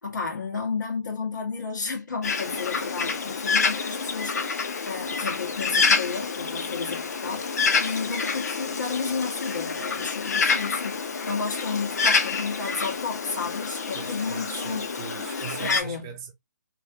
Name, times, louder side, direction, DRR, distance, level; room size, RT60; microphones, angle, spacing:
voice 1, 0.0-14.8 15.6-16.1, left 4 dB, 85° left, 1.6 m, -32 dB
Bird, 2.2-15.8, left 5 dB, 60° left, 0.7 m, -27 dB
voice 2, 13.9-16.3, right 8 dB, 15° right, 0.4 m, -40 dB
3.1 x 2.4 x 2.8 m
hypercardioid pair, 165°, 10 cm